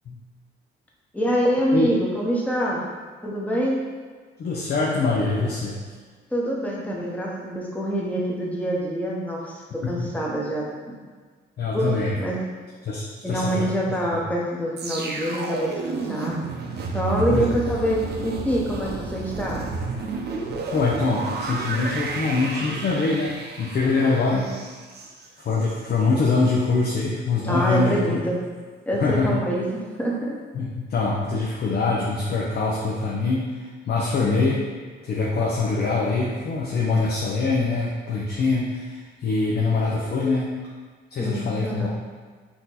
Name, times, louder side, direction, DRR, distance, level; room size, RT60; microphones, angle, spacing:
voice 1, 1.1-2.8 3.2-3.8 6.3-11.0 11.7-11.9 12.1-12.4 13.2-16.4 16.9-19.6 24.0-24.5 27.4-28.4 28.9-29.7 30.0-30.4 41.2-41.9, equal, 5° left, -4 dB, 1.0 m, -25 dB
voice 2, 4.4-5.8 9.8-10.1 11.6-12.2 12.8-13.7 17.3-17.4 20.7-24.5 25.4-28.2 28.9-29.4 30.5-34.6 35.0-40.5 41.1-41.9, left 3 dB, 55° left, -4 dB, 0.7 m, -24 dB
sound 1, 14.8-25.9 26.2-26.4, right 3 dB, 55° right, 0.7 m, -31 dB
4.4 x 2.9 x 4.0 m, 1.5 s
cardioid pair, 90°, 20 cm